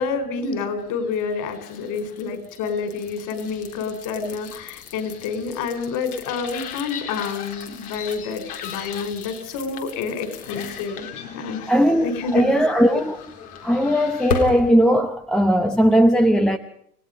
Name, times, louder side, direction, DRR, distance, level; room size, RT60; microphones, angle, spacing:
voice 1, 0.0-11.7 12.0-12.6, left 5 dB, 40° left, 4.9 m, -28 dB
sound 1, 1.1-14.7, left 6 dB, 70° left, 4.1 m, -36 dB
voice 2, 11.7-13.2 13.6-16.6, equal, ahead, 0.8 m, -18 dB
29.5 x 17.5 x 5.4 m
hypercardioid pair, 115°, 46 cm